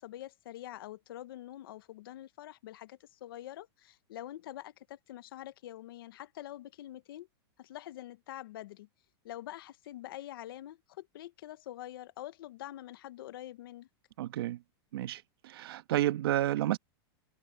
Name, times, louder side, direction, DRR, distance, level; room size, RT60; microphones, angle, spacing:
voice 1, 0.0-7.3 7.6-8.9 9.2-13.9, left 13 dB, 60° left, 1.2 m, -45 dB
voice 2, 14.2-14.6 14.9-16.8, right 13 dB, 60° right, 1.5 m, -31 dB
supercardioid pair, 175°, 14 cm